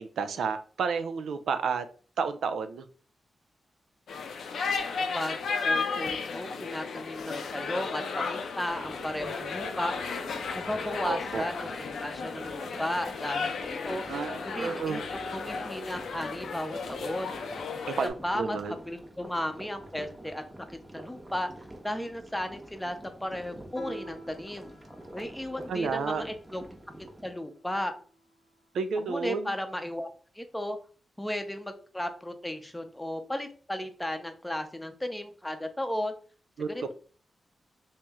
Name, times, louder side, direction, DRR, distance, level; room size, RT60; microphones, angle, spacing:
voice 1, 0.0-1.9 2.2-2.8 11.0-11.4 14.1-15.0 18.0-18.8 25.7-26.2 28.7-29.5 36.6-36.7, right 5 dB, 90° right, 10 dB, 0.3 m, -31 dB
sound 1, 4.1-18.1, left 5 dB, 85° left, 0.4 m, -34 dB
voice 2, 5.6-9.9 10.5-11.7 12.0-14.0 14.5-15.0 15.3-17.3 18.2-20.4 20.7-21.5 21.8-24.7 25.1-26.6 27.2-27.9 29.0-30.1 30.3-30.8 31.2-36.1 36.7-36.9, left 1 dB, 10° left, 7 dB, 0.6 m, -35 dB
sound 2, 8.7-27.3, right 1 dB, 20° right, 0.8 m, -47 dB
Piano, 23.8-28.7, equal, 45° left, 0.8 m, -50 dB
3.0 x 2.8 x 3.5 m, 0.41 s
cardioid pair, 70°, 0 cm